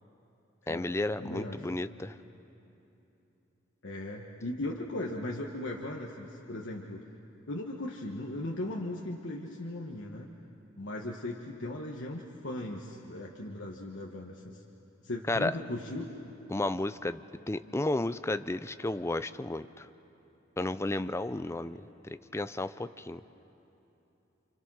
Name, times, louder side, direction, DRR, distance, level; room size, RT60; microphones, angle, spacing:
voice 1, 0.7-2.1 15.3-15.5 16.5-17.2 17.5-19.9 20.6-21.8 22.3-23.2, left 2 dB, 15° left, 12 dB, 0.5 m, -32 dB
voice 2, 1.2-1.7 3.8-7.0 7.5-10.3 10.8-14.6 15.0-16.1, left 1 dB, 70° left, -1 dB, 1.4 m, -38 dB
29.5 x 26.0 x 6.3 m, 3.0 s
head